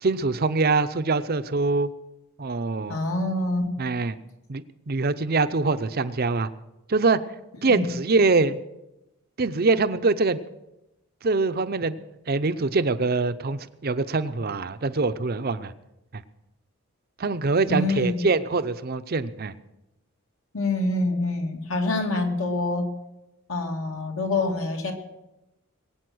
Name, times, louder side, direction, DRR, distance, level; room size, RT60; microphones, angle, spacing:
voice 1, 0.0-1.9 2.4-3.0 3.8-4.2 4.5-6.5 6.9-7.2 7.6-8.6 9.4-10.4 11.2-12.0 12.3-15.7 16.1-16.2 17.2-19.5, right 3 dB, 45° right, 12 dB, 0.6 m, -24 dB
voice 2, 2.9-3.8 7.6-7.9 17.6-18.3 20.5-22.9 23.5-24.9, left 2 dB, 70° left, 3 dB, 2.3 m, -26 dB
21.5 x 8.6 x 6.2 m, 0.96 s
head